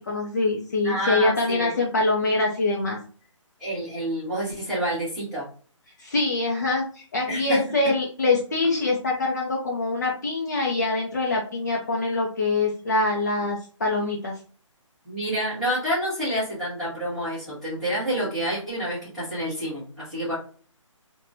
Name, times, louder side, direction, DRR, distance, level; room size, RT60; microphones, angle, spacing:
voice 1, 0.1-3.0 6.0-14.3, left 2 dB, 35° left, -2 dB, 0.5 m, -24 dB
voice 2, 0.8-1.8 3.6-5.4 7.3-7.6 15.0-20.3, equal, ahead, -14 dB, 1.1 m, -28 dB
2.9 x 2.2 x 2.5 m, 0.42 s
hypercardioid pair, 170°, 17 cm